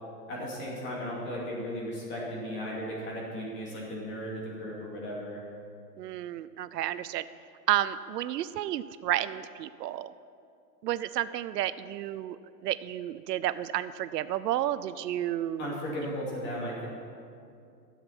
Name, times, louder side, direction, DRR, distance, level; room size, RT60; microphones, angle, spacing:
voice 1, 0.3-5.4 15.6-16.9, equal, 20° left, -4 dB, 2.6 m, -36 dB
voice 2, 6.0-7.3 7.7-10.1 10.8-12.4 12.6-15.7, right 12 dB, 75° right, 14 dB, 0.6 m, -31 dB
12.0 x 7.3 x 5.9 m, 2.4 s
hypercardioid pair, 155°, 49 cm